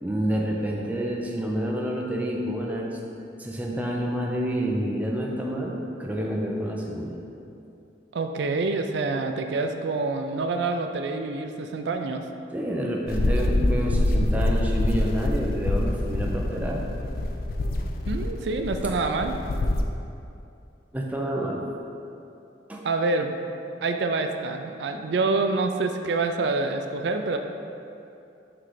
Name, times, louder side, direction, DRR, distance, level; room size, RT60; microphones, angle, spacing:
voice 1, 0.0-3.0 3.4-7.2 12.5-16.8 20.9-21.6 22.7-22.8, equal, 10° right, -2 dB, 0.5 m, -28 dB
voice 2, 8.1-12.2 18.1-19.4 22.8-23.3 23.8-27.4, right 3 dB, 70° right, 6 dB, 0.4 m, -26 dB
sound 1, 13.1-19.8, left 1 dB, 50° left, 0.4 m, -25 dB
5.9 x 3.2 x 5.0 m, 2.7 s
head